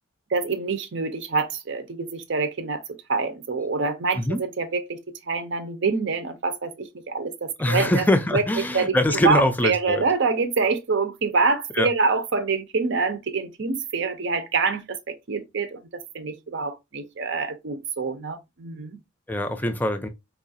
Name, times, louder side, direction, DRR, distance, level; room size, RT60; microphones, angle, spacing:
voice 1, 0.3-2.8 3.1-5.0 5.3-8.1 8.3-8.4 8.7-9.0 9.2-15.8 16.1-19.0, right 4 dB, 60° right, 0.6 m, -26 dB
voice 2, 7.6-10.0 11.7-11.9 19.3-20.1, left 1 dB, 10° left, 0.4 m, -23 dB
4.6 x 2.4 x 2.6 m
head